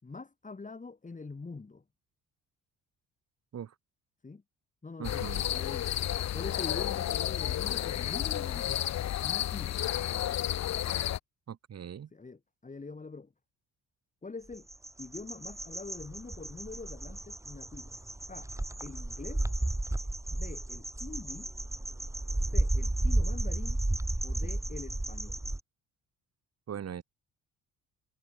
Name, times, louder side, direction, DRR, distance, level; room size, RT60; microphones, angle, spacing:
voice 1, 0.0-1.8 4.2-4.4 4.8-5.9 6.3-9.8 10.1-10.3 12.1-13.3 14.2-14.7 15.0-18.0 18.3-18.5 18.8-19.5 20.3-21.5 22.5-23.8 24.2-25.4, left 4 dB, 25° left, 5.3 m, -44 dB
sound 1, 5.0-11.2, left 12 dB, 60° left, 1.0 m, -31 dB
voice 2, 5.0-5.5 11.5-12.1 26.7-27.0, right 8 dB, 55° right, 4.9 m, -40 dB
sound 2, 14.5-25.6, right 1 dB, 10° right, 3.2 m, -33 dB
cardioid pair, 90°, 30 cm